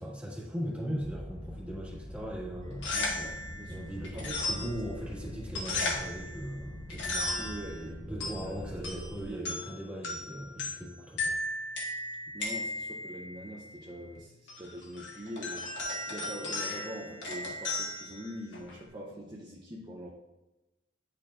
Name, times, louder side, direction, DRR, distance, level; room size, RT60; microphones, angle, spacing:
voice 1, 0.0-2.9 3.7-7.5 8.1-11.4, equal, 5° right, -5 dB, 1.7 m, -39 dB
sound 1, 1.0-9.3, equal, 40° left, 1.0 m, -44 dB
sound 2, 2.6-18.9, left 2 dB, 85° left, 1.6 m, -37 dB
voice 2, 2.9-4.9 7.4-9.6 12.3-20.1, right 1 dB, 25° right, -3 dB, 0.7 m, -43 dB
10.5 x 4.6 x 2.5 m, 1.0 s
head